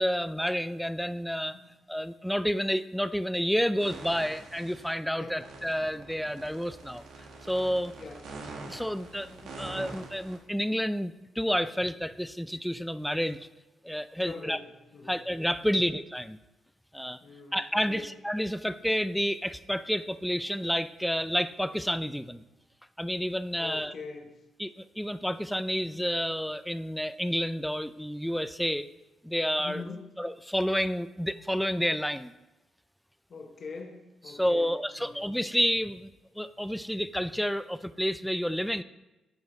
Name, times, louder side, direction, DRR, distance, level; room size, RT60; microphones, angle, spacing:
voice 1, 0.0-1.6 1.9-7.0 7.5-7.9 8.7-13.5 13.8-14.6 15.1-16.4 16.9-17.2 17.5-22.4 23.0-23.9 24.6-28.9 29.2-29.8 30.2-32.3 34.3-36.1 36.4-38.8, equal, ahead, 13 dB, 0.4 m, -30 dB
sound 1, 3.8-4.9 5.3-10.4, right 3 dB, 80° right, 1.3 m, -45 dB
voice 2, 8.0-8.3 14.2-15.2 15.6-15.8 17.2-18.1 23.6-24.4 29.6-30.1 33.3-34.7 35.0-35.3, left 4 dB, 50° left, 2 dB, 1.0 m, -43 dB
9.3 x 5.0 x 3.8 m, 1.0 s
cardioid pair, 80°, 0 cm